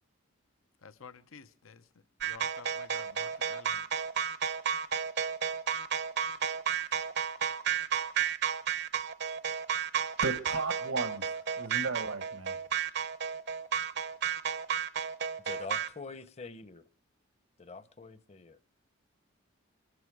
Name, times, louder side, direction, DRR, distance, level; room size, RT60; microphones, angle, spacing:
voice 1, 0.8-1.9 2.2-3.8, left 5 dB, 80° left, 0.8 m, -51 dB
sound 1, 2.2-15.9, right 7 dB, 55° right, 0.7 m, -32 dB
voice 2, 10.2-12.6, right 3 dB, 80° right, 1.2 m, -35 dB
voice 3, 15.4-16.8 17.6-18.6, left 4 dB, 30° left, 0.8 m, -45 dB
23.5 x 13.0 x 4.7 m
head